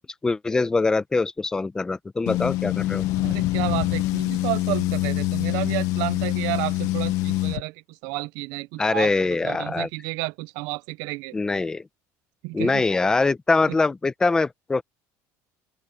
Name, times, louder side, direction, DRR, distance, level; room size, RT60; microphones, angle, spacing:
voice 1, 0.2-3.0 8.8-9.9 11.3-11.8 12.5-14.8, left 3 dB, 10° left, 0.9 m, -23 dB
sound 1, 2.3-7.6, left 17 dB, 60° left, 1.0 m, -25 dB
voice 2, 3.2-11.3 12.4-12.8 13.7-13.8, right 23 dB, 75° right, 0.5 m, -31 dB
open air
cardioid pair, 165°, 6 cm